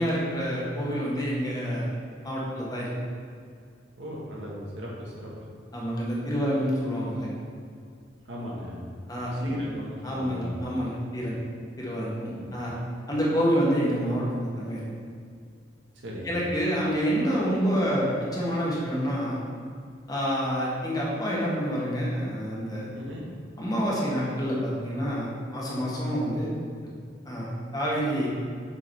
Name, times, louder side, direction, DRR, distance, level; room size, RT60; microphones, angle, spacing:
voice 1, 0.0-1.9 2.2-2.9 5.7-7.3 9.1-9.5 10.0-11.4 11.8-12.8 13.1-14.8 16.2-19.4 20.1-22.9 23.6-26.5 27.2-28.3, equal, 20° left, -5 dB, 1.5 m, -27 dB
voice 2, 4.0-5.3 8.3-8.8 9.3-10.5 12.3-12.5 16.0-16.3 22.9-23.2, equal, 80° right, -5 dB, 1.7 m, -38 dB
7.1 x 3.9 x 4.7 m, 2.2 s
head